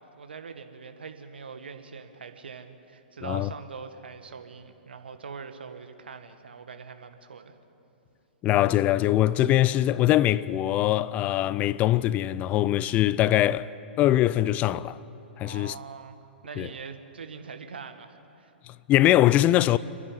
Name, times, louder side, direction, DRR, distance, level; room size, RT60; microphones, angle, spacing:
voice 1, 0.0-7.5 15.4-16.2 16.4-18.5, right 5 dB, 70° right, 1.7 m, -42 dB
voice 2, 8.4-13.7 14.0-15.0 15.4-15.8 16.6-16.7 18.7-19.8, left 14 dB, 25° left, 0.4 m, -22 dB
29.0 x 11.0 x 9.7 m
figure-of-eight pair, 110°, 6 cm